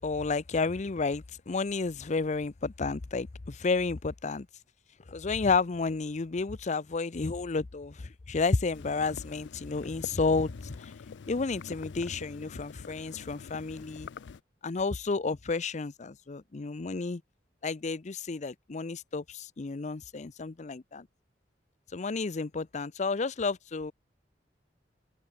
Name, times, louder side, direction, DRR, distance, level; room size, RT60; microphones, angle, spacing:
voice 1, 0.0-4.5 5.1-10.9 11.3-14.1 14.6-17.2 17.6-21.1 21.9-23.9, left 4 dB, 40° left, 0.6 m, -31 dB
sound 1, 8.7-14.4, left 5 dB, 85° left, 0.4 m, -45 dB
open air
head